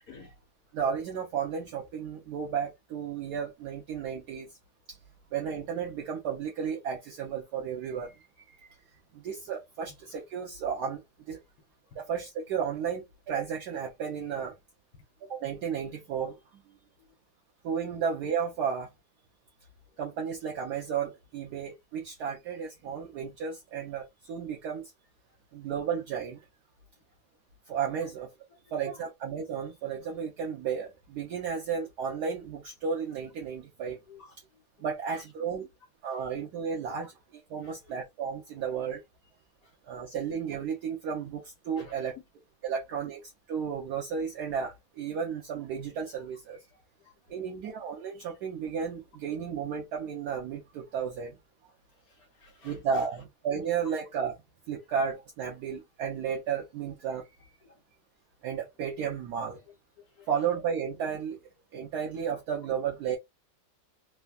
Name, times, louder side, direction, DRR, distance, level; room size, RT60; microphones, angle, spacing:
voice 1, 0.7-4.6 4.9-5.0 5.3-8.8 9.1-11.0 11.3-11.4 12.0-14.6 15.2-16.6 17.6-18.9 20.0-24.9 25.5-26.5 27.7-28.3 28.7-34.0 34.8-35.6 36.0-39.0 39.9-42.1 42.6-46.6 47.3-51.4 52.6-54.3 54.7-57.5 58.4-59.6 60.3-61.4 61.7-63.2, right 7 dB, 70° right, 1.1 m, -33 dB
voice 2, 28.6-29.1 34.1-34.6 35.1-35.7 36.1-36.2 37.6-38.0 39.6-39.7 41.7-42.2 42.7-43.1 46.7-47.7 52.1-53.2 53.5-53.6 57.6-57.8 59.7-60.5, left 4 dB, 60° left, 1.4 m, -55 dB
3.4 x 2.2 x 2.3 m
omnidirectional pair, 1.9 m